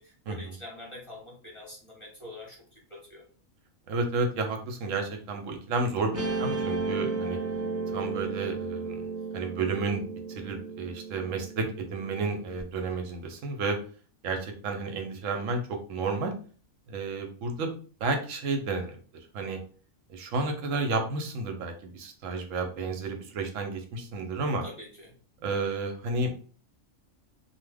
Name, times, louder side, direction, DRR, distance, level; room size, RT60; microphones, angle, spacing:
voice 1, 0.0-3.2 24.6-25.1, left 1 dB, 30° left, -3 dB, 0.7 m, -45 dB
voice 2, 3.9-7.4 7.9-9.1 9.3-13.8 14.2-16.3 16.9-17.7 18.0-18.9 19.3-19.6 20.1-24.6 25.4-26.3, right 3 dB, 80° right, 4 dB, 1.0 m, -31 dB
Guitar, 6.1-12.6, right 3 dB, 20° right, 0.5 m, -34 dB
2.8 x 2.1 x 3.3 m, 0.40 s
omnidirectional pair, 1.3 m